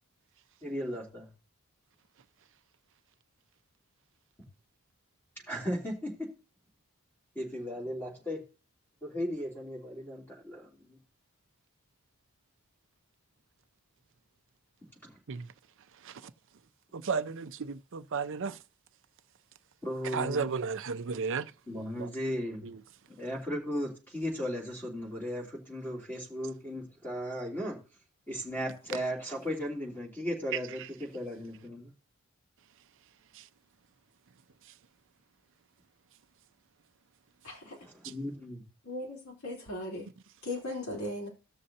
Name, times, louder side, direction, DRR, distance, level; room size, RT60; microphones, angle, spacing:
voice 1, 0.6-1.3 5.5-6.1 7.3-8.4 9.0-11.0 15.0-15.1 19.8-20.5 21.7-22.6 23.2-27.8 28.3-31.9 37.8-38.6, equal, 10° left, 3.0 m, -36 dB
voice 2, 16.9-18.6 20.1-21.5 22.0-22.1 22.6-22.8, right 5 dB, 55° right, 0.5 m, -33 dB
voice 3, 37.4-37.8 38.8-40.1 40.4-41.3, left 1 dB, 75° left, 3.8 m, -37 dB
15.0 x 6.4 x 2.8 m
head